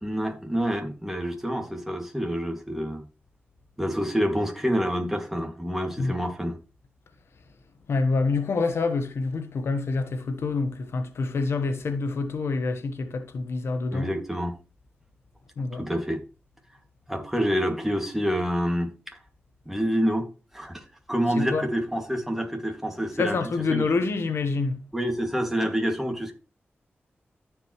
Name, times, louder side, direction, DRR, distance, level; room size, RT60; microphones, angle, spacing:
voice 1, 0.0-3.0 3.8-6.6 13.9-14.6 15.7-16.2 17.1-19.2 19.7-20.3 20.5-23.4 23.7-23.8 24.9-26.3, equal, 5° right, 2.3 m, -27 dB
voice 2, 7.9-14.1 15.6-15.8 21.4-21.6 23.2-24.8, left 3 dB, 80° left, 1.2 m, -27 dB
14.0 x 5.2 x 3.2 m
cardioid pair, 55°, 4 cm